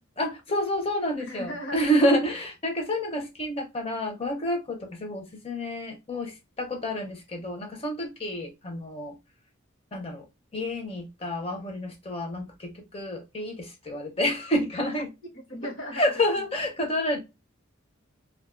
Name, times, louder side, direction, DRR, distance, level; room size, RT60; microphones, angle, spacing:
voice 1, 0.2-9.2 9.9-10.3 10.5-15.1 16.0-17.2, equal, 25° left, 0.6 m, -29 dB
voice 2, 1.2-2.0 15.0-15.1 15.3-16.5, equal, 65° left, 0.9 m, -38 dB
2.4 x 2.2 x 2.3 m
head